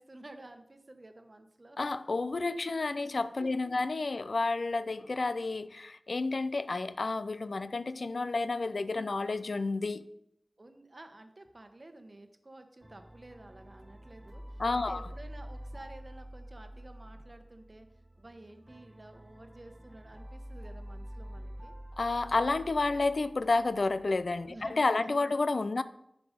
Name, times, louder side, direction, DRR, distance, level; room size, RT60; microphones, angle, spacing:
voice 1, 0.0-1.8 3.4-3.8 10.6-17.9 18.2-21.7 24.5-25.3, right 2 dB, 45° right, 1.0 m, -52 dB
voice 2, 1.8-10.1 14.6-15.0 22.0-25.8, left 3 dB, 80° left, 0.4 m, -30 dB
sound 1, 12.8-24.5, equal, 20° right, 0.6 m, -47 dB
10.0 x 4.9 x 5.1 m
wide cardioid pair, 55°, 0 cm